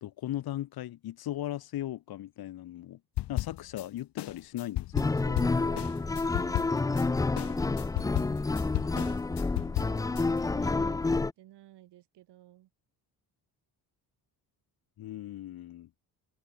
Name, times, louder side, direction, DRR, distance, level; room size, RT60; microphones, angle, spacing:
voice 1, 0.0-3.0 3.3-5.9 7.1-7.5 15.0-15.9, left 13 dB, 65° left, 1.8 m, -38 dB
sound 1, 3.2-3.8 4.2-7.0 7.4-10.2, left 16 dB, 80° left, 1.4 m, -34 dB
sound 2, 4.9-11.3, left 3 dB, 10° left, 0.4 m, -29 dB
voice 2, 7.9-12.7, right 14 dB, 85° right, 3.5 m, -55 dB
cardioid pair, 175°, 40 cm